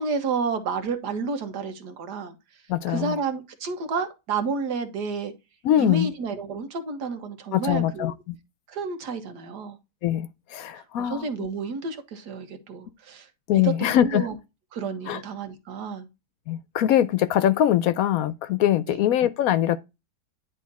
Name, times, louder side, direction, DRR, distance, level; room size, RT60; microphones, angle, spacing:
voice 1, 0.0-2.4 2.9-5.3 5.8-8.1 8.7-9.8 11.0-13.3 13.5-14.3 14.7-16.1 18.9-19.0, right 4 dB, 85° right, 1.8 m, -30 dB
voice 2, 2.7-3.2 5.6-6.1 7.5-8.4 10.0-11.3 13.5-14.3 15.1-15.2 16.5-19.8, left 11 dB, 70° left, 0.9 m, -22 dB
10.0 x 3.5 x 4.1 m
omnidirectional pair, 1.7 m